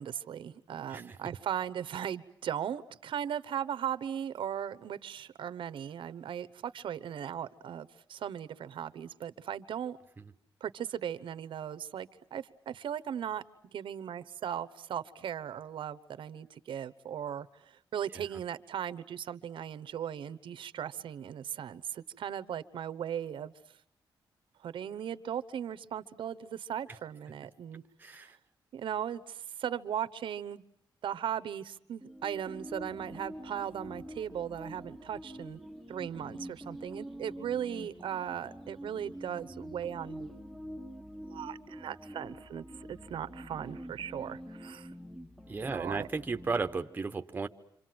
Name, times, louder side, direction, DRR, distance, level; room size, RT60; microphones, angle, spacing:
voice 1, 0.0-10.0 10.6-23.5 24.6-27.8 28.1-28.3 28.7-30.6 31.0-35.6 35.9-40.3 41.3-44.9 45.7-46.1, right 9 dB, 80° right, 15 dB, 1.0 m, -38 dB
voice 2, 28.0-28.4 45.5-47.5, right 4 dB, 20° right, 7 dB, 1.0 m, -34 dB
sound 1, 32.0-46.8, equal, ahead, 1.1 m, -46 dB
27.5 x 26.5 x 7.7 m, 0.71 s
wide cardioid pair, 170°, 8 cm